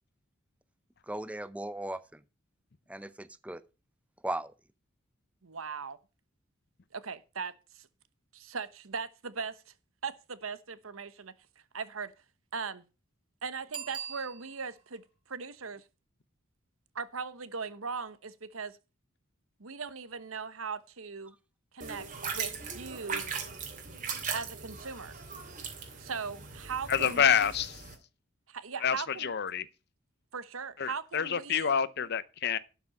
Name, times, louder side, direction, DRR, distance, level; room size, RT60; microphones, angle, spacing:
voice 1, 1.1-2.2 2.9-3.6 4.2-4.5, right 1 dB, 5° right, 0.6 m, -37 dB
voice 2, 5.4-6.0 6.9-7.9 8.3-9.7 10.0-11.3 11.7-12.1 12.5-12.8 13.4-15.8 16.9-18.8 19.6-21.3 21.7-23.2 24.3-25.2 26.0-27.5 28.5-29.3 30.3-31.7, right 5 dB, 90° right, 1.1 m, -39 dB
Bicycle bell, 13.7-14.9 20.3-20.4, right 8 dB, 25° right, 2.1 m, -42 dB
sound 1, 21.8-27.9, right 5 dB, 40° right, 2.7 m, -39 dB
voice 3, 26.9-27.8 28.8-29.7 30.8-32.6, left 7 dB, 55° left, 0.7 m, -28 dB
12.0 x 6.0 x 5.4 m
head